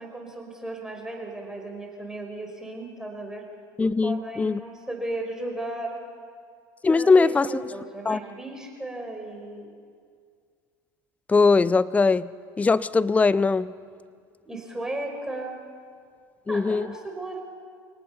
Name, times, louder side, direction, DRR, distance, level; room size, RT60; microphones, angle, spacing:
voice 1, 0.0-3.5 4.0-6.0 6.9-9.7 14.4-15.5 16.5-17.4, right 2 dB, 5° right, 1 dB, 4.8 m, -35 dB
voice 2, 3.8-4.6 6.8-7.6 8.1-8.2 11.3-12.3 12.6-13.7 16.5-16.9, left 4 dB, 15° left, 19 dB, 0.5 m, -20 dB
27.0 x 18.5 x 5.6 m, 2.1 s
hypercardioid pair, 85°, 11 cm